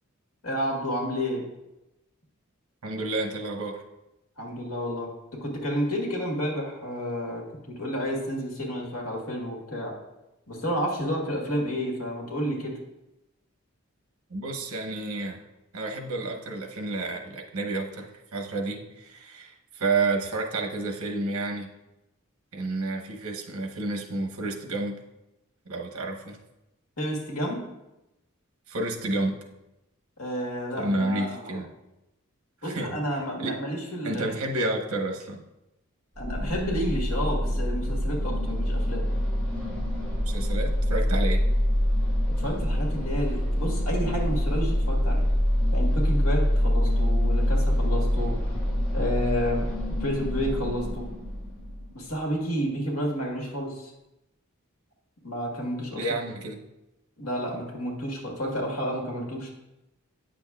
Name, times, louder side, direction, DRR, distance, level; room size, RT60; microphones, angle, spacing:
voice 1, 0.4-1.5 4.4-9.9 10.5-12.7 27.0-27.6 30.2-31.6 32.6-34.4 36.2-39.0 42.4-45.3 45.7-48.3 48.9-49.7 50.0-51.1 51.9-53.9 55.2-56.1 57.2-59.5, equal, 85° left, -1 dB, 1.7 m, -30 dB
voice 2, 2.8-3.8 14.3-15.4 15.7-21.7 22.5-25.0 25.7-26.4 28.7-29.4 30.8-31.7 32.6-33.0 33.4-33.5 34.0-35.4 40.3-41.4 55.9-56.6, right 2 dB, 80° right, 2 dB, 1.0 m, -30 dB
sound 1, 36.2-52.1, equal, 5° left, 2.6 m, -25 dB
9.0 x 6.2 x 2.4 m, 0.94 s
head